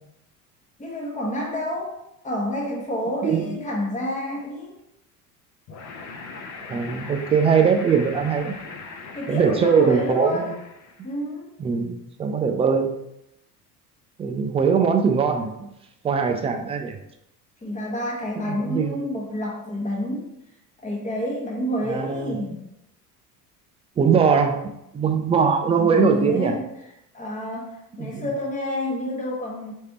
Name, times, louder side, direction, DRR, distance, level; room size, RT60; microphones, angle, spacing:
voice 1, 0.8-2.0 2.2-4.7 9.1-10.6 11.0-11.5 17.6-20.3 20.8-22.6 25.7-26.7 27.1-29.7, left 1 dB, 15° left, -2 dB, 1.4 m, -29 dB
sound 1, 5.7-11.1, left 4 dB, 35° left, 0.8 m, -40 dB
voice 2, 6.7-8.5 9.3-10.5 11.6-12.9 14.2-15.7 16.0-17.0 18.5-19.0 21.8-22.4 24.0-24.6 24.9-26.5 28.0-28.2, right 6 dB, 15° right, 5 dB, 0.3 m, -21 dB
5.2 x 3.2 x 2.9 m, 0.82 s
hypercardioid pair, 70°, 47 cm